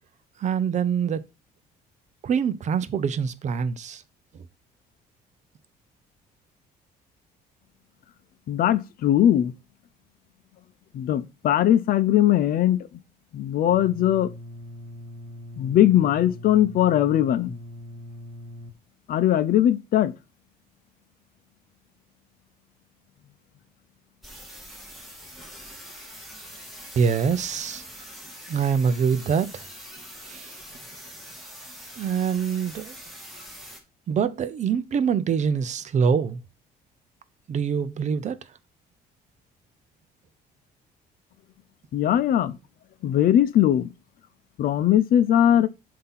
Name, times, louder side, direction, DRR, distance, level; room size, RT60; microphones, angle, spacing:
voice 1, 0.4-1.2 2.2-4.0 27.0-27.8 28.5-29.7 30.3-30.5 32.0-33.0 34.1-36.4 37.5-38.4, right 6 dB, 45° right, 0.7 m, -24 dB
voice 2, 8.5-9.5 10.9-12.8 13.3-14.3 15.6-17.6 19.1-20.1 41.9-42.6 43.0-43.9 44.6-45.7, left 11 dB, 60° left, 0.7 m, -20 dB
sound 1, 13.7-18.7, left 1 dB, 90° right, 1.0 m, -41 dB
sound 2, 24.2-33.8, equal, ahead, 2.1 m, -43 dB
7.6 x 2.9 x 5.8 m
cardioid pair, 110°, 17 cm